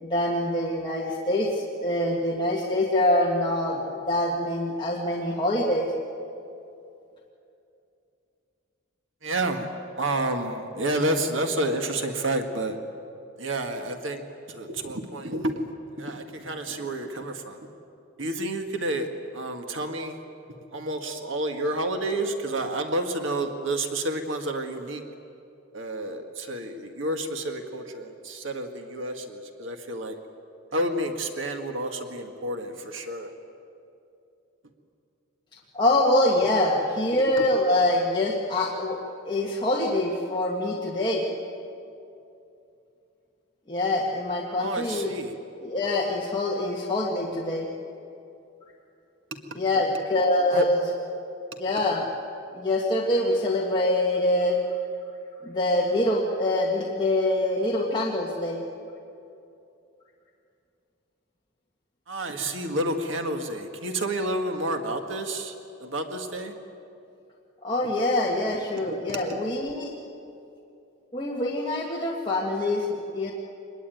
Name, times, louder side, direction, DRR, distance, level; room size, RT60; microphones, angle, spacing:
voice 1, 0.0-5.9 35.7-39.0 39.2-41.3 43.7-45.1 45.6-47.7 49.6-50.8 51.6-52.1 52.5-54.6 55.4-58.6 67.6-69.9 71.1-73.3, left 1 dB, 25° left, -3 dB, 1.8 m, -25 dB
voice 2, 9.2-9.7 10.0-12.8 13.4-14.2 14.5-15.7 16.0-17.6 18.2-19.1 19.3-20.2 20.7-25.0 25.7-30.2 30.7-33.3 37.4-37.5 44.6-45.4 49.5-49.6 50.5-50.7 62.1-65.5 65.8-66.5 68.8-69.4, right 1 dB, 70° right, 5 dB, 1.9 m, -30 dB
24.5 x 21.0 x 9.3 m, 2.7 s
head